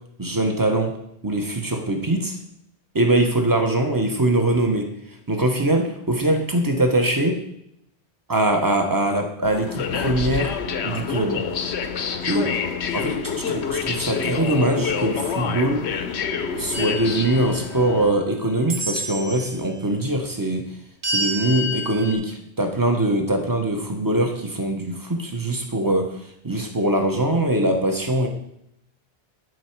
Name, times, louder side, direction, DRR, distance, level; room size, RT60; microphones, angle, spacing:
voice 1, 0.2-0.9 1.2-2.4 2.9-4.9 5.3-7.4 8.3-10.5 10.8-11.4 12.3-12.5 12.9-15.9 16.6-20.7 21.1-26.2 26.4-28.3, right 1 dB, 20° right, 4 dB, 0.9 m, -22 dB
sound 1, 9.4-18.1, left 6 dB, 90° left, 1.0 m, -27 dB
sound 2, 16.7-18.2 18.7-19.6 21.0-22.1, equal, 35° right, 1.2 m, -29 dB
10.5 x 4.6 x 4.5 m, 0.75 s
omnidirectional pair, 1.1 m